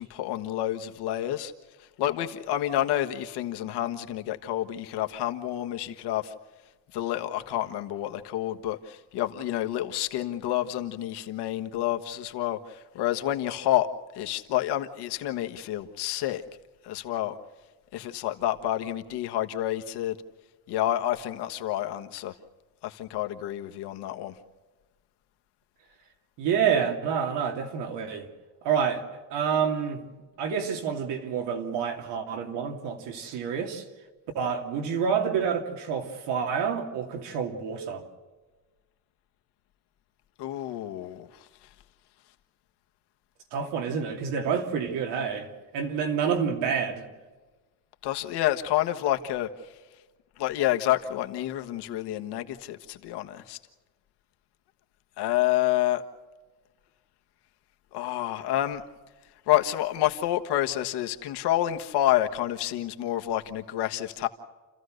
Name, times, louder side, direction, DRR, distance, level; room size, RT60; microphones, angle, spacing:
voice 1, 0.0-1.5 2.0-6.3 6.9-13.9 14.1-16.4 16.8-17.4 17.9-20.2 20.7-22.3 22.8-24.3 40.4-41.3 48.0-49.5 50.4-53.6 55.2-56.0 57.9-58.8 59.5-64.3, left 13 dB, 75° left, 1.5 m, -28 dB
voice 2, 26.4-28.3 28.6-29.0 29.3-30.0 30.4-33.8 34.3-38.0 43.5-47.1, right 7 dB, 90° right, 3.0 m, -28 dB
29.5 x 15.0 x 6.6 m
cardioid pair, 170°, 40 cm